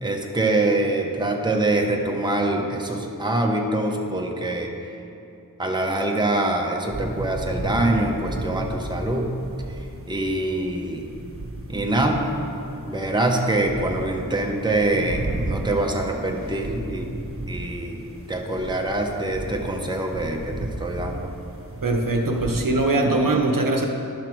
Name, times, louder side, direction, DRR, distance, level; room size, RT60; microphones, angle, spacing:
voice 1, 0.0-4.7 5.6-9.3 9.7-11.0 11.7-12.2 12.8-17.1 17.5-18.0 18.3-21.3, right 2 dB, 10° right, 0 dB, 0.9 m, -24 dB
sound 1, 6.9-22.6, right 1 dB, 35° right, 1.1 m, -34 dB
voice 2, 21.8-23.9, right 2 dB, 60° right, 2 dB, 0.9 m, -21 dB
11.5 x 5.8 x 4.5 m, 2.8 s
wide cardioid pair, 50°, 37 cm